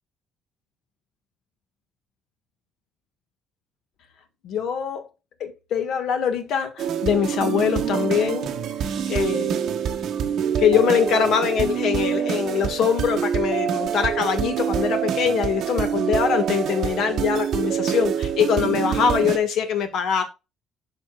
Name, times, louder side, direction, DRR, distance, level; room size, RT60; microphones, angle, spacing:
voice 1, 4.4-5.1 5.4-8.5 9.1-9.6 10.6-20.2, left 7 dB, 65° left, 1.8 m, -23 dB
sound 1, 6.8-19.4, right 8 dB, 55° right, 1.2 m, -25 dB
12.5 x 4.2 x 2.5 m
cardioid pair, 165°, 0 cm